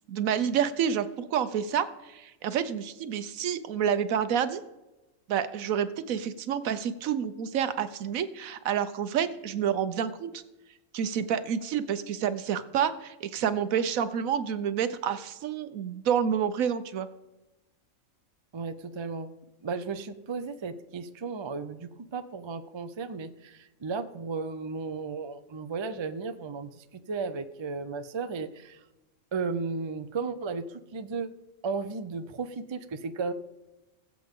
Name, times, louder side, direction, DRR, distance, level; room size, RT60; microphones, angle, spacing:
voice 1, 0.1-4.6 5.3-10.4 10.9-17.1, right 8 dB, 80° right, 12 dB, 1.2 m, -29 dB
voice 2, 18.5-19.3 19.6-28.8 29.3-31.3 31.6-33.3, right 4 dB, 40° right, 10 dB, 0.4 m, -34 dB
20.5 x 7.6 x 3.7 m, 1.0 s
omnidirectional pair, 1.4 m